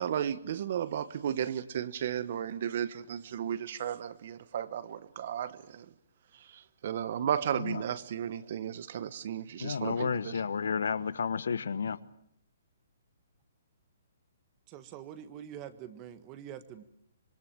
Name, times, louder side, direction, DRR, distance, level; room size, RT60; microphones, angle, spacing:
voice 1, 0.0-5.8 6.5-10.3, right 9 dB, 40° right, 16 dB, 1.2 m, -34 dB
voice 2, 9.6-12.0, left 6 dB, 80° left, 16 dB, 1.3 m, -32 dB
voice 3, 14.7-16.8, right 10 dB, 20° right, 12 dB, 1.5 m, -45 dB
26.0 x 23.0 x 8.8 m, 0.70 s
hypercardioid pair, 175°, 0 cm